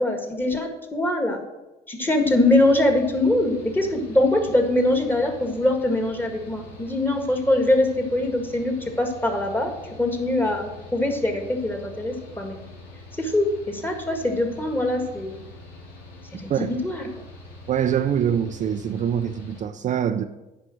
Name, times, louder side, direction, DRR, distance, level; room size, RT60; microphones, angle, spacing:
voice 1, 0.0-1.4 1.9-9.7 10.0-12.6 13.2-15.4 16.4-17.1, left 1 dB, 10° left, 1.7 m, -23 dB
Mechanical fan, 2.2-19.6, left 2 dB, 70° left, 3.0 m, -44 dB
voice 2, 17.7-20.2, right 9 dB, 45° right, 0.5 m, -24 dB
9.9 x 5.4 x 6.3 m
cardioid pair, 110°, 17 cm